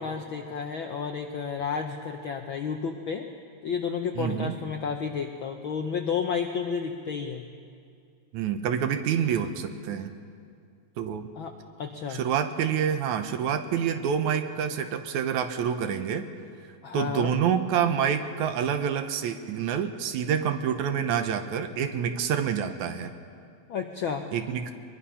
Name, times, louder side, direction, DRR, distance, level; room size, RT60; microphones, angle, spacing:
voice 1, 0.0-3.3 3.6-7.4 11.4-11.5 11.8-12.2 16.8-17.3 23.7-24.3, left 6 dB, 75° left, 4 dB, 1.1 m, -31 dB
voice 2, 4.2-4.6 8.3-10.1 11.0-11.3 12.1-16.3 16.9-23.1 24.3-24.7, right 8 dB, 80° right, 8 dB, 2.3 m, -27 dB
22.5 x 22.0 x 5.6 m, 2.3 s
omnidirectional pair, 3.4 m